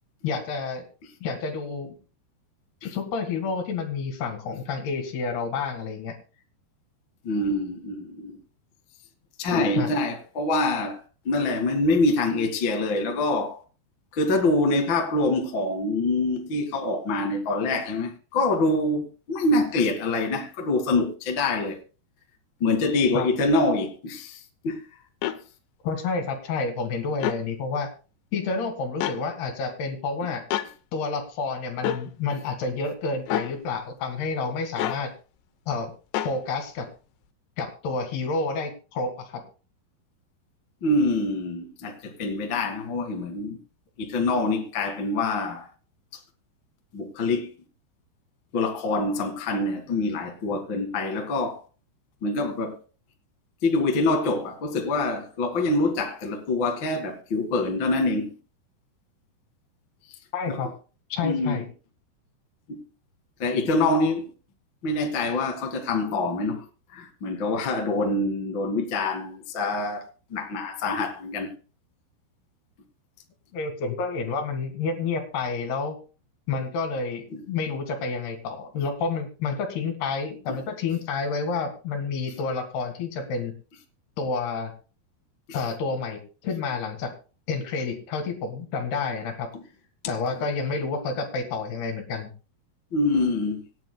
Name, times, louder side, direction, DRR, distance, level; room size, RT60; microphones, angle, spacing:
voice 1, 0.2-0.8 1.2-1.9 2.8-6.2 9.8-9.9 23.1-23.3 25.8-27.9 28.3-30.4 30.9-35.1 35.7-35.9 36.2-36.9 37.6-39.4 60.3-60.7 61.1-61.7 73.5-76.0 76.5-83.5 84.2-84.7 85.5-87.1 87.5-89.5 90.1-92.3, left 4 dB, 70° left, 3.9 m, -29 dB
voice 2, 7.2-8.4 9.4-11.0 11.2-13.6 14.1-21.8 22.6-24.8 40.8-43.6 44.0-45.7 46.9-47.5 48.5-51.6 52.2-52.8 53.6-58.3 60.5-60.6 61.2-61.6 62.7-62.8 63.4-64.3 64.8-66.6 66.9-71.5 77.3-77.4 80.5-80.6 92.9-93.6, left 2 dB, 45° left, 1.6 m, -25 dB
sound 1, 25.2-25.4 27.1-27.4 29.0-29.2 30.5-30.7 31.8-32.0 33.3-33.5 34.8-35.0 36.1-36.4, left 11 dB, 90° left, 3.1 m, -27 dB
25.5 x 9.2 x 2.2 m
omnidirectional pair, 4.8 m